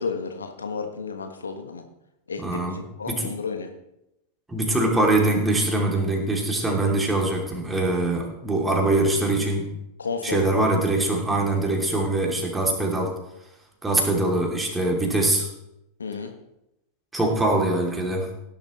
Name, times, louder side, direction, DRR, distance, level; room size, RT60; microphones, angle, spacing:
voice 1, 0.0-1.8 2.3-3.7 10.0-10.4 16.0-16.3, left 5 dB, 75° left, 6 dB, 1.3 m, -32 dB
voice 2, 2.4-2.8 3.1-3.3 4.5-9.7 10.2-13.1 13.8-15.5 17.1-18.3, right 2 dB, 10° right, 0 dB, 3.0 m, -23 dB
17.0 x 10.5 x 3.2 m, 0.88 s
figure-of-eight pair, 90°, 0 cm